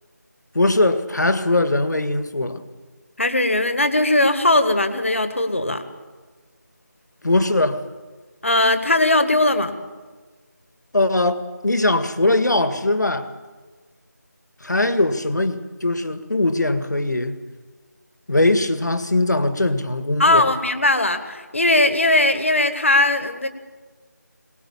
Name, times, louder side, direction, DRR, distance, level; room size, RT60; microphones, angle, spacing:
voice 1, 0.5-2.6 7.2-7.8 10.9-13.3 14.6-17.4 18.3-20.4, left 2 dB, 70° left, 1.9 m, -20 dB
voice 2, 3.2-5.9 8.4-9.8 20.2-23.5, left 2 dB, 45° left, 1.7 m, -19 dB
22.5 x 19.5 x 7.2 m
figure-of-eight pair, 180°, 10 cm